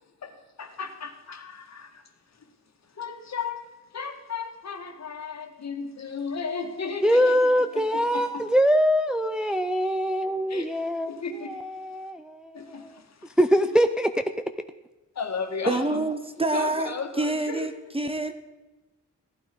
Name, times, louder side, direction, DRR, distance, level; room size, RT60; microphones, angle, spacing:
voice 1, 0.2-2.0 3.0-3.6 3.9-7.4 7.7-8.4 10.5-10.7 11.1-11.6 12.5-13.4 15.2-16.0 16.5-17.7, left 5 dB, 60° left, 1.9 m, -34 dB
voice 2, 7.0-12.9 13.4-14.1, equal, 5° right, 0.5 m, -23 dB
voice 3, 15.7-18.3, right 2 dB, 20° right, 0.9 m, -27 dB
15.5 x 12.0 x 5.3 m
wide cardioid pair, 145°, 30 cm